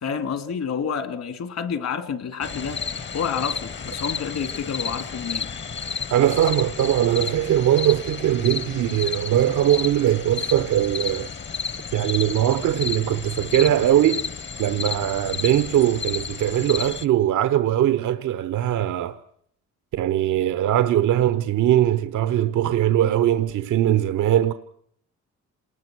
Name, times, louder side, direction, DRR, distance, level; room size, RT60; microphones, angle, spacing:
voice 1, 0.0-2.8 3.1-5.5, left 7 dB, 60° left, 2.7 m, -29 dB
sound 1, 2.4-17.0, left 6 dB, 40° left, 1.1 m, -32 dB
voice 2, 6.1-11.3 11.9-14.2 14.6-19.2 19.9-24.5, right 12 dB, 80° right, 1.0 m, -21 dB
27.5 x 20.0 x 6.3 m
cardioid pair, 90°, 30 cm